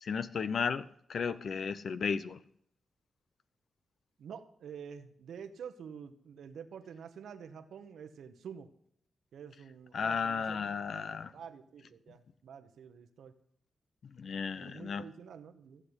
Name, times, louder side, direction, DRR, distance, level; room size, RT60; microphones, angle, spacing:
voice 1, 0.0-2.4 9.9-11.3 14.2-15.0, left 6 dB, 70° left, 14 dB, 0.8 m, -34 dB
voice 2, 4.2-8.7 9.3-10.6 10.9-13.3 14.6-15.8, right 7 dB, 85° right, 8 dB, 1.1 m, -48 dB
15.0 x 7.6 x 8.2 m, 0.66 s
cardioid pair, 70°, 0 cm